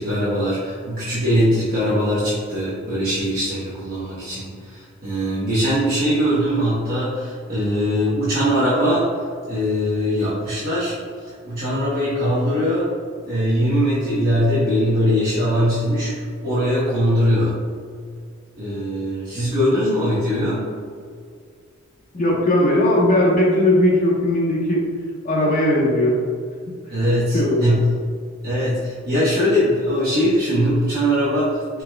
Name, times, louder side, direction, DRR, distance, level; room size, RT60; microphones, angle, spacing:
voice 1, 0.0-11.0 11.2-12.9 13.2-17.6 18.6-20.7 26.9-27.9 28.4-31.8, equal, 45° right, -9 dB, 0.9 m, -21 dB
voice 2, 22.1-24.8 25.2-26.2 27.3-27.6, left 1 dB, 40° left, -4 dB, 1.0 m, -18 dB
4.6 x 4.3 x 2.2 m, 2.1 s
head